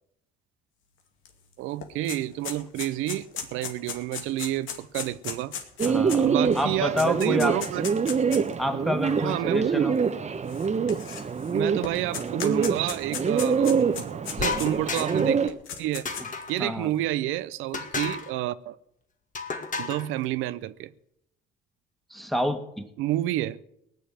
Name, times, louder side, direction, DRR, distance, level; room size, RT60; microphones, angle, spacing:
sound 1, 1.3-1.4 1.6-8.5 9.3-9.4 10.5-11.5 11.8-15.1 15.5-16.4, left 7 dB, 80° left, 2.3 m, -36 dB
voice 1, 1.6-5.6 6.2-7.9 9.2-9.9 11.5-16.1 16.5-18.8 19.8-20.9 23.0-23.6, right 14 dB, 85° right, 0.6 m, -29 dB
Bird, 5.8-15.5, right 6 dB, 35° right, 1.0 m, -25 dB
voice 2, 5.9-6.3 6.5-7.6 8.6-10.0 16.6-16.9 22.1-22.8, left 1 dB, ahead, 1.9 m, -28 dB
sound 2, 14.4-15.3 16.1-16.7 17.7-18.3 19.3-20.1, left 4 dB, 40° left, 2.1 m, -32 dB
18.5 x 6.8 x 9.2 m
cardioid pair, 80°, 20 cm